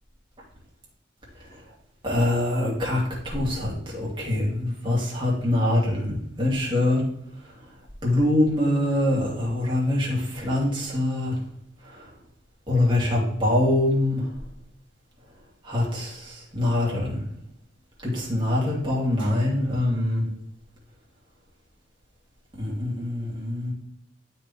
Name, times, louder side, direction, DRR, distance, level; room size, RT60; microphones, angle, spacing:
voice 1, 2.0-6.1 6.4-7.0 8.0-10.1 10.4-11.3 12.7-14.2 15.7-16.1 16.5-17.2 18.2-20.2 22.6-23.7, left 1 dB, 25° right, -4 dB, 2.7 m, -24 dB
12.0 x 4.4 x 3.6 m, 0.71 s
head